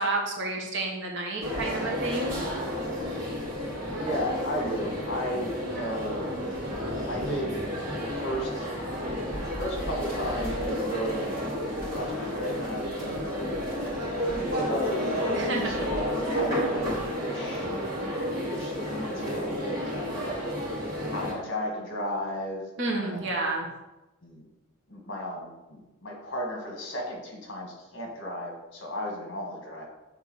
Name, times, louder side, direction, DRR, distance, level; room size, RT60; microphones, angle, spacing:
voice 1, 0.0-2.4 15.3-15.8 22.8-23.7, right 2 dB, 60° right, 0 dB, 1.3 m, -30 dB
sound 1, 1.4-21.3, equal, 45° right, 2.1 m, -31 dB
voice 2, 3.9-6.4 7.1-7.6 7.9-8.6 9.6-11.3 11.9-15.1 15.6-16.9 17.2-17.7 18.5-20.4 21.1-22.6 22.9-23.2 24.2-24.5 24.9-29.8, equal, 60° left, 0 dB, 1.6 m, -34 dB
7.0 x 3.5 x 4.7 m, 1.0 s
head